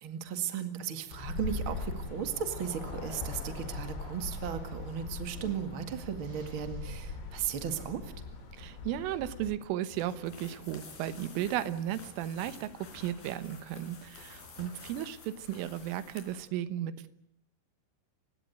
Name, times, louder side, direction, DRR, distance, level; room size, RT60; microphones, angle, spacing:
voice 1, 0.0-8.1, right 8 dB, 60° right, 8 dB, 1.3 m, -36 dB
sound 1, 1.1-9.5, left 3 dB, 85° left, 7.1 m, -40 dB
sound 2, 3.3-3.7 4.2-5.8 6.2-7.1 7.7-8.1, right 3 dB, 40° right, 6.4 m, -56 dB
voice 2, 8.6-17.1, right 12 dB, 80° right, 14 dB, 3.6 m, -35 dB
sound 3, 9.8-16.5, left 4 dB, 50° left, 5.8 m, -50 dB
30.0 x 16.5 x 9.1 m, 0.75 s
omnidirectional pair, 5.7 m